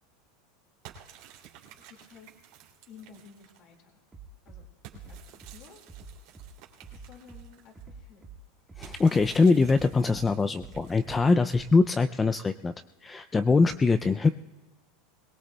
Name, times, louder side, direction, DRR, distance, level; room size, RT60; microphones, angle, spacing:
sound 1, 0.8-3.7 4.8-7.8 8.8-11.5, right 9 dB, 55° right, 2.7 m, -52 dB
voice 1, 1.9-2.3 2.9-4.0 4.5-4.7 4.9-5.8 6.9-8.3, left 6 dB, 45° left, 2 dB, 2.0 m, -53 dB
Bass drum, 4.1-4.6 4.9-5.5 5.9-6.5 6.8-7.4 7.7-8.4 8.7-9.3 9.6-10.2 10.6-11.2 11.5-11.6, right 6 dB, 10° right, 1.5 m, -46 dB
voice 2, 8.8-12.7 13.0-14.3, left 4 dB, 15° left, 10 dB, 0.3 m, -23 dB
22.0 x 18.5 x 2.2 m, 1.3 s
supercardioid pair, 145°, 0 cm